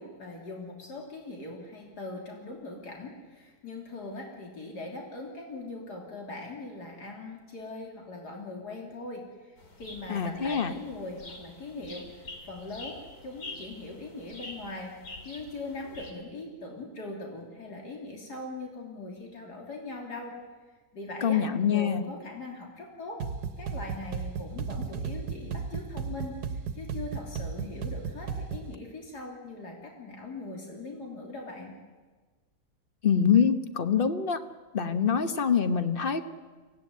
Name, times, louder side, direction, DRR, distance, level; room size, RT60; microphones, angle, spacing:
voice 1, 0.0-14.9 15.2-20.4 20.9-23.2 23.6-31.7, left 2 dB, 90° left, 0 dB, 3.7 m, -41 dB
sound 1, 9.6-16.1, left 2 dB, 70° left, 3.5 m, -46 dB
voice 2, 10.1-10.7 21.2-22.0 33.0-34.4 34.7-36.3, left 7 dB, 40° left, 9 dB, 1.2 m, -25 dB
sound 2, 23.2-28.8, right 5 dB, 85° right, 1.6 m, -35 dB
24.5 x 17.0 x 9.5 m, 1.4 s
omnidirectional pair, 1.7 m